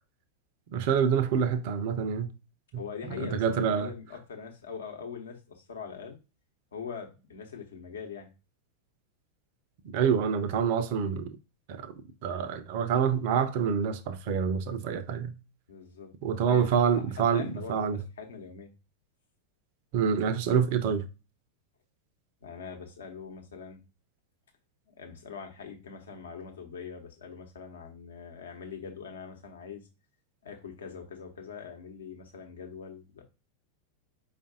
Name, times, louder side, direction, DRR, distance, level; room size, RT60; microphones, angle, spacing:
voice 1, 0.7-2.3 3.2-3.9 9.9-11.3 11.7-11.9 12.2-15.3 16.2-18.0 19.9-21.0, right 7 dB, 50° right, 0.5 m, -27 dB
voice 2, 2.7-6.2 6.7-8.3 15.7-16.8 17.1-18.7 22.4-23.8 24.9-29.9 30.4-33.2, left 6 dB, 65° left, 0.9 m, -42 dB
5.0 x 2.5 x 2.6 m
figure-of-eight pair, 90°, 0 cm